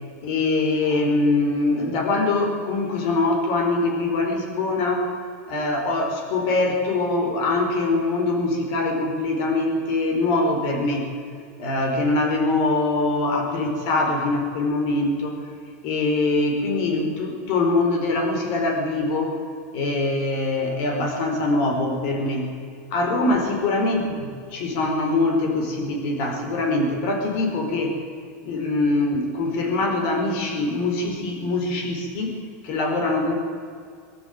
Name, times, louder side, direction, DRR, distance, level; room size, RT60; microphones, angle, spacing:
voice 1, 0.2-5.1 5.5-11.1 11.6-15.3 15.8-19.3 19.7-22.5 22.9-27.9 28.4-32.3 32.6-33.3, left 2 dB, 45° left, 4 dB, 4.3 m, -23 dB
22.5 x 12.5 x 9.4 m, 2.3 s
supercardioid pair, 165°, 8 cm